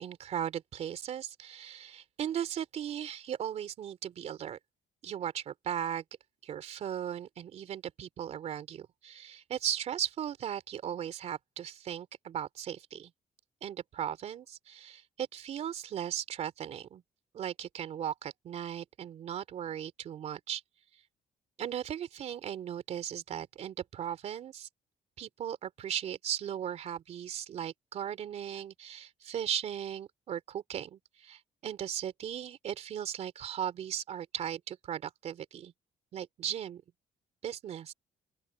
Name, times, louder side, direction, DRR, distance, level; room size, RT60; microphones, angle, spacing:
voice 1, 0.0-4.6 5.0-6.0 6.4-13.1 13.6-17.0 17.3-20.6 21.6-24.7 25.2-35.7 36.1-36.8 37.4-37.9, right 9 dB, 50° right, 3.3 m, -37 dB
open air
cardioid pair, 155°, 14 cm